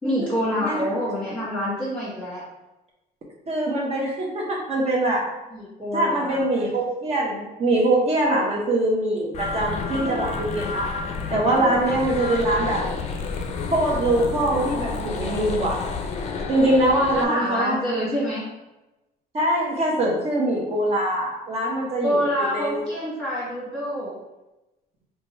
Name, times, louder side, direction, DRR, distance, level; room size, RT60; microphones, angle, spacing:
voice 1, 0.0-2.4 5.5-6.4 17.1-18.4 22.0-24.1, equal, 10° left, -11 dB, 1.4 m, -26 dB
voice 2, 3.5-5.2 5.9-10.9 11.3-12.8 13.7-15.8 16.5-17.8 19.3-22.8, right 1 dB, 35° right, -3 dB, 0.7 m, -23 dB
sound 1, 9.3-17.2, left 4 dB, 40° left, 0.4 m, -30 dB
2.8 x 2.3 x 4.2 m, 1.0 s
cardioid pair, 110°, 17 cm